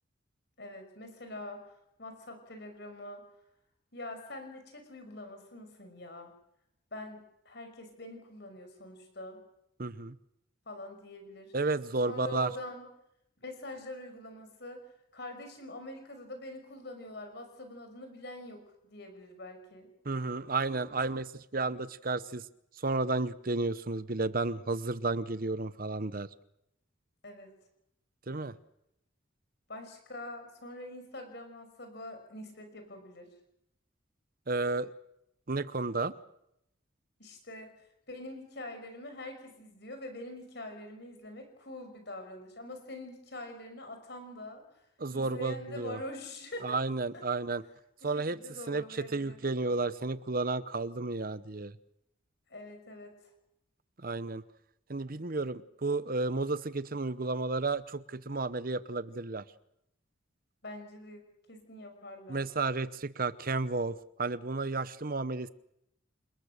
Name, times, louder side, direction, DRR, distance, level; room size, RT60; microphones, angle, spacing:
voice 1, 0.6-1.7 2.0-3.2 3.9-6.3 6.9-9.4 10.7-11.5 12.0-12.9 13.4-14.8 15.1-19.9 27.2-27.5 29.7-33.3 37.2-37.8 38.1-44.9 45.1-46.8 47.1-47.2 48.0-49.4 52.5-53.2 60.6-62.4, left 1 dB, 55° left, 6 dB, 5.7 m, -44 dB
voice 2, 9.8-10.1 11.5-12.5 20.0-22.4 22.8-26.3 28.3-28.5 34.5-34.9 35.5-36.1 45.0-46.0 46.6-47.6 48.0-48.4 48.7-51.7 54.0-54.4 54.9-59.4 62.3-65.5, right 3 dB, 45° right, 15 dB, 0.9 m, -32 dB
29.0 x 20.5 x 6.7 m, 0.80 s
head